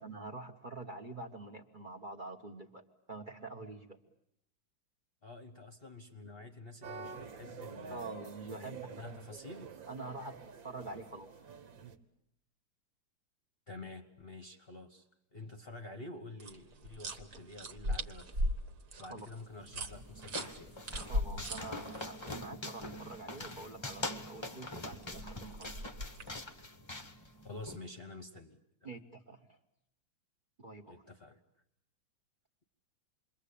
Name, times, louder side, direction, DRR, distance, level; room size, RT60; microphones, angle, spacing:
voice 1, 0.0-2.8 3.1-4.0 7.9-9.2 9.9-11.3 19.0-19.3 20.9-25.8 28.8-29.6 30.6-31.0, right 2 dB, 30° right, 7 dB, 1.2 m, -46 dB
voice 2, 5.2-8.1 8.5-9.7 10.8-11.0 13.7-18.6 19.0-20.8 27.4-29.0 30.9-31.4, left 2 dB, 35° left, 6 dB, 1.2 m, -49 dB
sound 1, 6.8-12.0, right 6 dB, 70° right, 2.1 m, -48 dB
sound 2, 16.4-22.3 24.9-26.4, equal, 50° right, 1.8 m, -38 dB
sound 3, 19.6-27.8, left 2 dB, 20° left, 0.9 m, -44 dB
28.0 x 22.5 x 8.5 m, 0.74 s
omnidirectional pair, 2.2 m